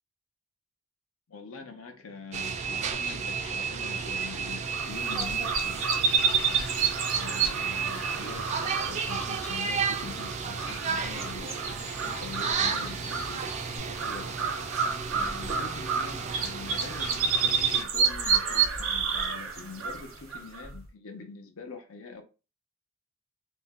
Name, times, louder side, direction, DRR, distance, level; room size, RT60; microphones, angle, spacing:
voice 1, 1.3-5.8 6.5-14.5 15.1-22.2, left 4 dB, 90° left, 0.6 m, -44 dB
sound 1, 2.3-17.8, right 6 dB, 35° right, 0.3 m, -33 dB
sound 2, 3.0-3.6 3.9-7.5 8.0-8.7 8.9-13.8, left 4 dB, 35° left, 0.6 m, -49 dB
sound 3, 4.7-20.8, right 6 dB, 70° right, 0.7 m, -30 dB
2.6 x 2.1 x 3.5 m
head